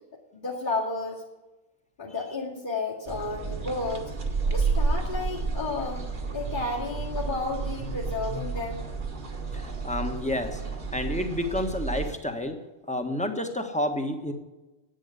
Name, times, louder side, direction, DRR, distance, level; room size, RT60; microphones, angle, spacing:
voice 1, 0.3-1.2 2.0-4.1 4.5-6.0 6.3-8.9, left 3 dB, 45° left, -6 dB, 2.4 m, -32 dB
sound 1, 3.1-12.1, right 4 dB, 45° right, 1.6 m, -31 dB
voice 2, 9.5-10.6 10.9-12.6 12.9-14.3, left 1 dB, 5° left, 5 dB, 1.3 m, -29 dB
11.0 x 9.1 x 8.2 m, 1.1 s
omnidirectional pair, 1.2 m